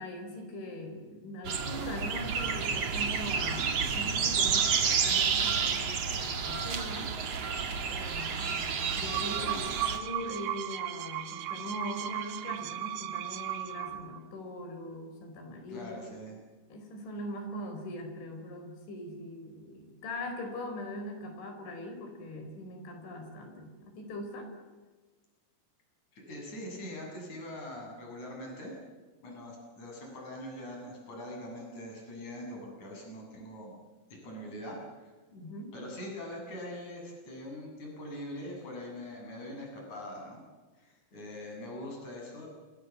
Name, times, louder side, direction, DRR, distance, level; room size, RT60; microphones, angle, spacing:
voice 1, 0.0-7.1 7.9-8.6 9.0-9.7 9.9-16.0 16.7-24.5 35.3-35.7, left 1 dB, 65° left, 5 dB, 7.0 m, -41 dB
sound 1, 1.4-10.0, right 6 dB, 50° right, 2.1 m, -30 dB
sound 2, 8.8-14.2, right 13 dB, 70° right, 3.2 m, -36 dB
voice 2, 9.2-9.6 15.7-16.3 26.1-28.7 29.2-33.7 34.1-35.1 35.7-40.4 40.8-42.5, left 1 dB, 35° left, 0 dB, 9.1 m, -42 dB
29.5 x 27.0 x 7.4 m, 1.3 s
omnidirectional pair, 5.8 m